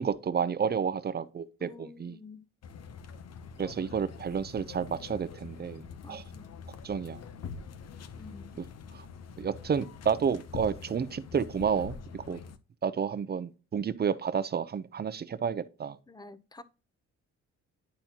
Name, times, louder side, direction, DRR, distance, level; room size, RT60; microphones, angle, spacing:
voice 1, 0.0-2.2 3.6-6.2 6.8-7.2 8.9-9.1 9.4-12.4 12.8-16.0, right 7 dB, 35° right, 0.6 m, -31 dB
voice 2, 1.6-2.4 6.0-6.5 8.2-8.5 16.1-16.6, left 3 dB, 15° left, 0.7 m, -49 dB
sound 1, 2.6-12.6, left 5 dB, 60° left, 0.7 m, -45 dB
10.5 x 4.2 x 2.9 m
cardioid pair, 90°, 30 cm